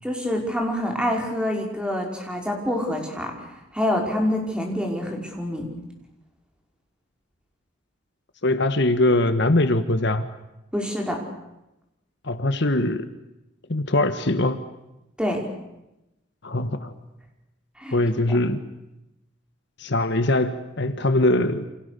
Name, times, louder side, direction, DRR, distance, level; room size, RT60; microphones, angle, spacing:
voice 1, 0.0-3.3 3.7-5.7 10.7-11.2 15.2-15.4 17.8-18.0, left 1 dB, 5° right, 1 dB, 5.5 m, -26 dB
voice 2, 8.4-10.2 12.2-13.0 13.7-14.6 16.4-16.9 17.9-18.6 19.8-21.6, left 1 dB, 60° left, 10 dB, 1.5 m, -22 dB
29.5 x 27.5 x 6.9 m, 0.92 s
head